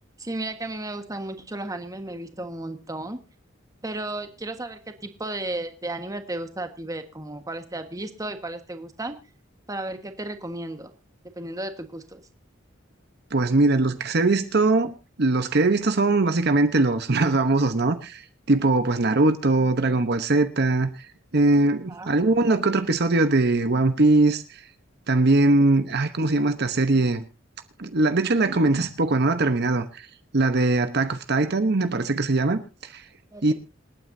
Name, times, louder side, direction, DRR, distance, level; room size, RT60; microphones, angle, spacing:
voice 1, 0.2-3.2 3.8-9.1 9.7-10.9 11.4-12.2 21.9-22.2 33.3-33.5, right 2 dB, 20° right, 1.4 m, -34 dB
voice 2, 13.3-18.2 18.5-20.9 21.3-24.4 25.1-27.2 27.8-30.0 30.3-32.6 32.9-33.0 33.4-33.5, right 2 dB, 55° right, 1.0 m, -21 dB
27.0 x 9.4 x 2.7 m
head